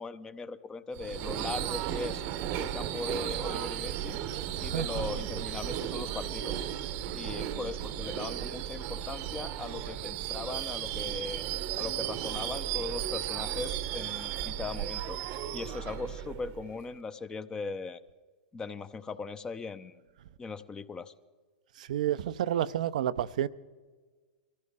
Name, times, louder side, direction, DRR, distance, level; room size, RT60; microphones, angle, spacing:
voice 1, 0.0-2.2 2.5-4.2 4.6-6.6 7.1-11.4 11.8-15.2 15.5-18.0 18.5-19.9 20.4-21.1, left 4 dB, 20° left, 0.7 m, -39 dB
Subway metro underground / Screech, 0.9-16.9, right 11 dB, 50° right, 0.9 m, -35 dB
voice 2, 4.6-5.0 7.0-7.2 21.8-23.5, right 11 dB, 70° right, 0.5 m, -30 dB
23.0 x 15.0 x 3.7 m
hypercardioid pair, 110°, 4 cm